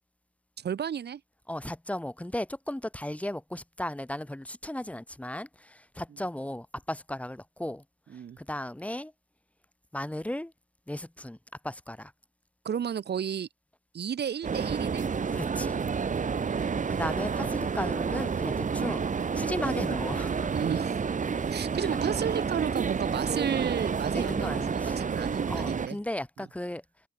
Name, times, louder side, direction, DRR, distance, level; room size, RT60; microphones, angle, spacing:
voice 1, 0.6-1.2 8.1-8.4 12.6-13.5 13.9-15.0 16.3-17.1 19.7-19.8 20.5-21.0 21.5-24.6 25.0-26.0, right 8 dB, 55° right, 7.2 m, -33 dB
voice 2, 1.5-7.8 8.1-9.1 9.9-10.5 10.9-11.4 11.6-12.1 15.3-15.8 16.7-19.1 19.3-20.5 21.8-21.9 24.1-25.0 25.5-26.8, left 1 dB, 5° left, 7.6 m, -35 dB
sound 1, 14.4-25.9, right 5 dB, 40° right, 5.9 m, -30 dB
cardioid pair, 90°, 20 cm